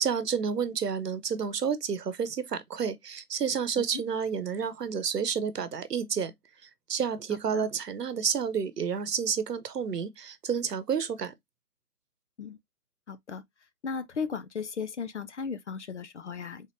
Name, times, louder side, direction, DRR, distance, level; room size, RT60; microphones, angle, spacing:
voice 1, 0.0-6.3 6.9-11.3, right 7 dB, 85° right, 0.9 m, -30 dB
voice 2, 13.1-13.4 13.8-16.7, left 5 dB, 50° left, 0.5 m, -36 dB
3.6 x 3.5 x 2.6 m
hypercardioid pair, 155°, 46 cm